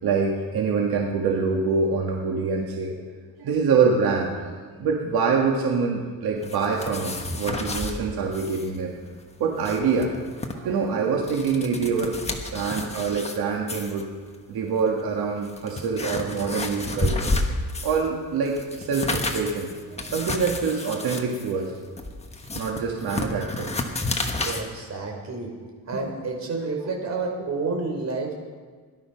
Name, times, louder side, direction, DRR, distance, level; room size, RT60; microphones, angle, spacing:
voice 1, 0.0-3.0 3.4-9.0 9.4-10.1 10.5-12.2 12.5-14.1 14.5-17.3 17.8-21.7 22.5-23.7 25.9-26.1, right 5 dB, 80° right, 0 dB, 1.8 m, -25 dB
Flipping Through A Book, 6.4-8.0 8.3-8.7 8.9-9.0 9.4-10.5 11.1-13.4 13.7-14.0 14.8-14.9 15.4-18.1 18.4-24.6, left 2 dB, 15° left, 1.3 m, -31 dB
voice 2, 24.4-25.5 25.9-28.3, right 3 dB, 45° right, 1 dB, 3.5 m, -29 dB
17.5 x 11.5 x 5.8 m, 1.5 s
cardioid pair, 145°, 37 cm